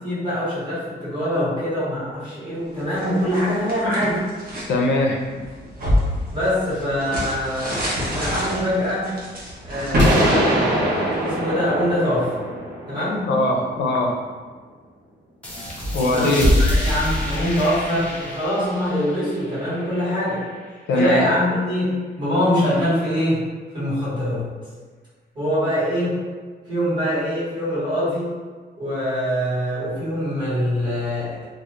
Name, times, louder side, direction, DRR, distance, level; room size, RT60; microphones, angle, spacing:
voice 1, 0.0-4.2 6.3-7.8 8.1-9.1 9.6-10.9 11.2-12.4 12.9-13.3 16.1-20.4 20.9-23.4 23.7-24.4 25.3-26.2 26.7-28.3 28.8-31.4, equal, 25° right, -10 dB, 1.0 m, -23 dB
sound 1, 2.7-4.7 5.2-11.3, left 1 dB, 55° right, 0.7 m, -25 dB
voice 2, 4.7-5.2 13.3-14.1 15.9-16.5 20.9-21.3, left 1 dB, 80° left, 0 dB, 0.4 m, -20 dB
sound 2, 10.0-13.8, right 1 dB, 85° right, 0.9 m, -23 dB
sound 3, 15.4-20.7, left 1 dB, 5° left, 0.5 m, -25 dB
2.3 x 2.0 x 2.8 m, 1.4 s
cardioid pair, 160°, 18 cm